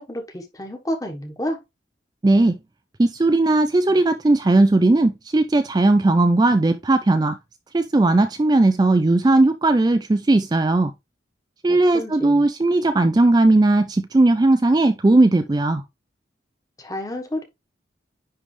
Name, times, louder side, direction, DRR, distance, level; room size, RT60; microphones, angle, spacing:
voice 1, 0.0-1.6 11.7-12.5 16.8-17.4, left 1 dB, 20° left, 1.4 m, -30 dB
voice 2, 2.2-2.6 3.0-7.4 7.7-10.9 11.6-15.8, right 2 dB, 20° right, 0.3 m, -17 dB
10.0 x 3.4 x 3.3 m
head